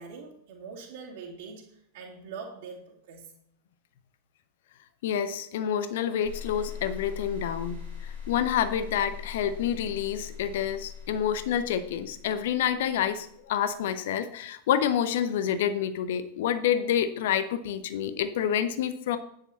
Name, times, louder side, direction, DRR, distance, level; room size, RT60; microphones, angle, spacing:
voice 1, 0.0-1.6 1.9-3.3, right 5 dB, 55° right, -4 dB, 2.3 m, -43 dB
voice 2, 5.0-19.2, left 9 dB, 55° left, 11 dB, 1.0 m, -28 dB
sound 1, 6.2-13.4, left 7 dB, 80° left, 4.0 m, -41 dB
10.0 x 9.6 x 4.2 m, 0.71 s
figure-of-eight pair, 90°, 0 cm